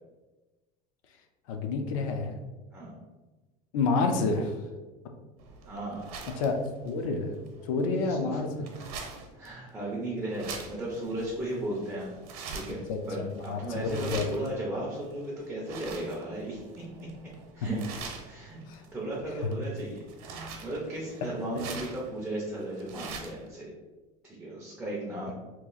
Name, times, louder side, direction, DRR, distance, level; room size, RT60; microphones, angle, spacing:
voice 1, 1.5-2.3 3.7-4.6 6.4-6.6 6.8-7.3 7.7-8.5 12.9-14.3 18.7-18.8 19.4-19.5 21.5-21.7, left 4 dB, 60° left, 5 dB, 0.5 m, -29 dB
sound 1, 5.4-23.5, right 5 dB, 75° right, 0.7 m, -45 dB
voice 2, 5.7-6.1 8.1-8.4 8.7-9.0 9.3-12.2 12.5-16.8 17.5-17.8 18.3-18.6 18.9-23.7 24.2-25.3, right 1 dB, 5° right, -5 dB, 0.4 m, -36 dB
3.0 x 2.4 x 3.7 m, 1.2 s
cardioid pair, 180°, 19 cm